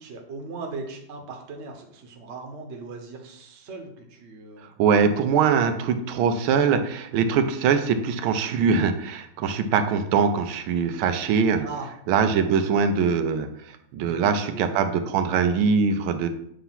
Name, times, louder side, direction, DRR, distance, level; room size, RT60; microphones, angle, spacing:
voice 1, 0.0-4.7 5.6-5.7 11.6-12.5 14.0-14.9, right 3 dB, 45° right, 2 dB, 1.0 m, -39 dB
voice 2, 4.8-11.6 12.1-16.3, right 6 dB, 85° right, 8 dB, 1.5 m, -22 dB
6.8 x 2.8 x 5.7 m, 0.71 s
omnidirectional pair, 2.2 m